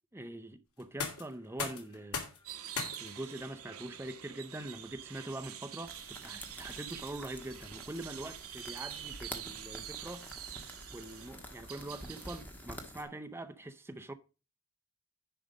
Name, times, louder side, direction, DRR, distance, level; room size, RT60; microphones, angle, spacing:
voice 1, 0.1-2.3 2.7-10.5 10.9-14.1, right 1 dB, 10° right, 0.6 m, -44 dB
sound 1, 0.7-12.5, left 5 dB, 85° left, 2.5 m, -47 dB
sound 2, 2.4-12.4, right 11 dB, 75° right, 1.1 m, -46 dB
sound 3, 5.9-13.0, equal, 10° left, 1.3 m, -49 dB
10.0 x 5.0 x 5.1 m
head